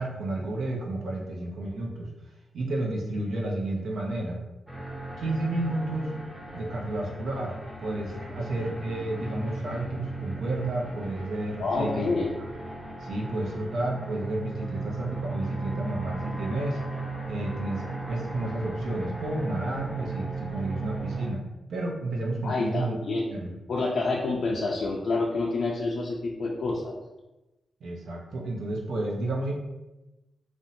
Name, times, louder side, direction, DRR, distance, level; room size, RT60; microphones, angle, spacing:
voice 1, 0.0-2.1 2.5-4.4 5.2-6.1 6.5-12.1 13.0-16.8 17.3-21.4 21.7-23.0 23.3-23.5 27.8-29.5, right 2 dB, 80° right, -1 dB, 0.5 m, -31 dB
sound 1, 4.7-21.3, right 3 dB, 15° right, 0.8 m, -36 dB
voice 2, 11.6-12.3 22.4-23.3 23.7-27.0, left 3 dB, 70° left, -4 dB, 0.4 m, -28 dB
2.6 x 2.1 x 2.6 m, 1.0 s
supercardioid pair, 50°, 0 cm